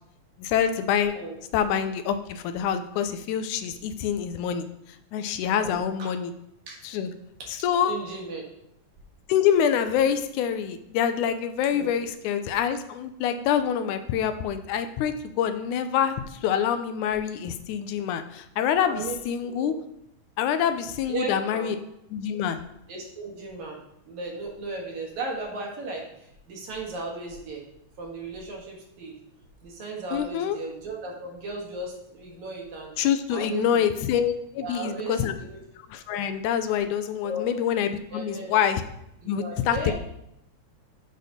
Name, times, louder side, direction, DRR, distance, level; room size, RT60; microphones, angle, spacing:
voice 1, 0.4-1.1 1.5-4.7 5.1-6.3 6.8-7.1 7.5-8.0 9.3-19.7 20.4-21.8 22.1-22.6 30.1-30.6 33.0-35.3 35.9-38.8 39.3-39.9, left 8 dB, 85° left, 9 dB, 2.1 m, -26 dB
voice 2, 5.6-6.1 6.7-6.8 7.4-7.5 7.9-8.4 11.7-11.9 18.8-19.8 21.1-21.7 22.9-23.8 24.1-27.6 28.0-29.1 29.6-32.9 33.3-34.0 34.6-35.6 37.2-37.6 38.1-38.6 39.2-39.9, right 2 dB, 70° right, -1 dB, 2.9 m, -36 dB
7.9 x 4.2 x 5.1 m, 0.79 s
omnidirectional pair, 3.5 m